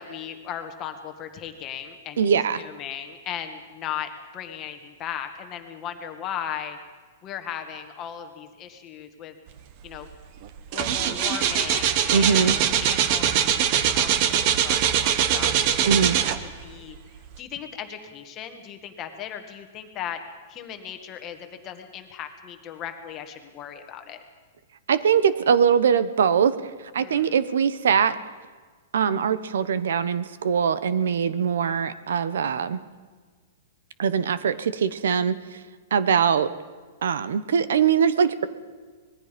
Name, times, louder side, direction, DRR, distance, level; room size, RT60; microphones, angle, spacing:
voice 1, 0.0-2.2 2.6-6.8 7.2-9.3 9.8-10.1 10.7-16.3 16.6-17.0 17.4-20.2 20.5-24.2 27.0-27.3, left 9 dB, 20° left, 6 dB, 1.5 m, -37 dB
voice 2, 2.2-2.6 12.1-12.5 15.8-16.2 24.9-26.5 26.9-28.2 28.9-32.8 34.0-35.6 35.9-36.5 37.0-38.5, right 7 dB, 75° right, 14 dB, 1.1 m, -22 dB
sound 1, 9.9-10.1 10.4-16.7 17.3-17.4, right 9 dB, 30° right, 1.0 m, -22 dB
25.5 x 20.5 x 5.3 m, 1.5 s
hypercardioid pair, 180°, 0 cm